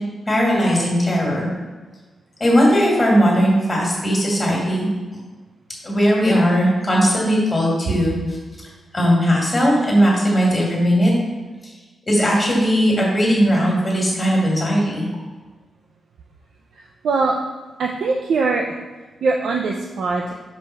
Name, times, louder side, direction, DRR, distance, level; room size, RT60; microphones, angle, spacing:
voice 1, 0.3-1.5 2.4-4.9 5.8-8.2 8.9-11.1 12.1-15.0, equal, 20° left, -3 dB, 1.7 m, -18 dB
voice 2, 16.7-17.4 17.8-18.7 19.2-20.3, right 4 dB, 75° right, 0 dB, 0.5 m, -21 dB
5.1 x 3.4 x 5.5 m, 1.3 s
wide cardioid pair, 175°, 0 cm